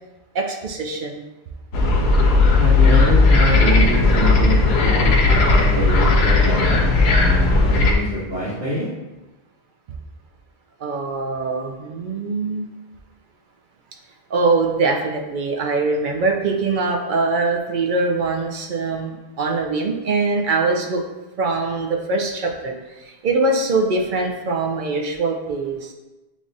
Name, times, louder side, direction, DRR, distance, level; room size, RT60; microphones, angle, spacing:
voice 1, 0.3-1.2 10.8-12.7 14.3-21.0 21.4-25.9, right 3 dB, 60° right, 2 dB, 0.6 m, -22 dB
sound 1, 1.7-7.9, left 3 dB, 75° left, 0.9 m, -15 dB
voice 2, 2.6-8.9, right 1 dB, 90° right, -9 dB, 1.3 m, -25 dB
7.1 x 2.4 x 2.6 m, 1.0 s
omnidirectional pair, 1.1 m